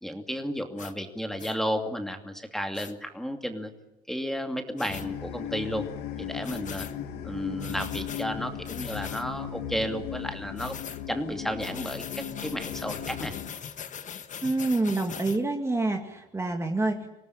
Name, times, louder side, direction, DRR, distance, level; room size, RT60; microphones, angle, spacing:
voice 1, 0.0-3.7 4.1-5.9 6.2-6.9 7.2-10.8 11.1-13.3, equal, ahead, 5 dB, 2.6 m, -33 dB
sound 1, 0.8-0.9 1.4-1.6 2.7-2.9 4.8-5.1 6.4-6.9 7.6-8.2 8.6-9.2 10.6-11.0 11.6-15.4, left 8 dB, 45° left, 1.5 m, -41 dB
sound 2, 4.9-13.5, left 9 dB, 85° left, 2.1 m, -37 dB
voice 2, 14.4-17.1, right 2 dB, 15° right, 4 dB, 2.2 m, -27 dB
25.5 x 18.5 x 9.9 m, 0.93 s
cardioid pair, 110°, 17 cm